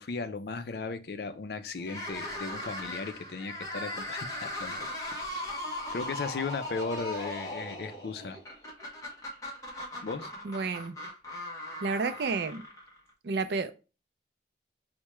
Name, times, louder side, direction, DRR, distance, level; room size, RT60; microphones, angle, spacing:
voice 1, 0.0-4.9 5.3-5.4 5.9-8.4 10.0-10.3, left 4 dB, 60° left, 0.4 m, -36 dB
sound 1, 1.8-13.1, left 1 dB, 20° left, 0.9 m, -39 dB
voice 2, 10.4-11.0 11.8-12.6 13.2-13.7, right 4 dB, 70° right, 0.4 m, -30 dB
4.6 x 2.1 x 2.9 m
head